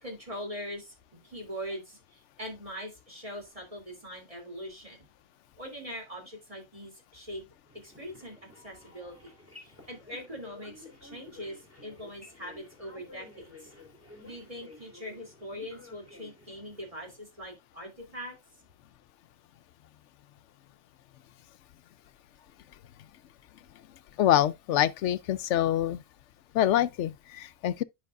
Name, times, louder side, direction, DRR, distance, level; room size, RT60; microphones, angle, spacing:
voice 1, 0.0-5.1 5.6-7.4 7.8-9.3 9.6-13.7 14.2-18.3, equal, 25° right, 3.1 m, -42 dB
sound 1, 7.6-17.2, left 2 dB, 10° right, 3.0 m, -53 dB
voice 2, 24.2-26.0 26.5-27.8, left 12 dB, 70° left, 0.9 m, -25 dB
10.5 x 5.4 x 2.4 m
omnidirectional pair, 1.3 m